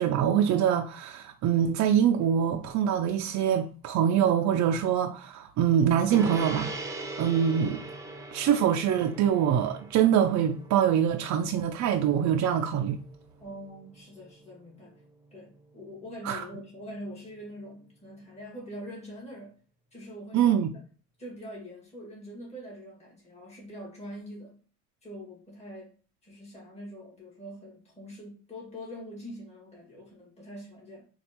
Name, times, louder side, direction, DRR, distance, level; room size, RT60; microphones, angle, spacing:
voice 1, 0.0-6.7 7.2-7.8 8.3-13.0 16.2-16.4 20.3-20.7, right 9 dB, 70° right, 0.4 m, -24 dB
Gong, 6.1-15.8, right 2 dB, 10° right, 0.7 m, -42 dB
voice 2, 13.4-15.0 15.3-19.6 19.9-20.8 21.2-24.6 25.0-25.9 26.2-31.1, equal, 20° left, 1.8 m, -43 dB
4.2 x 2.3 x 2.9 m
cardioid pair, 90°, 30 cm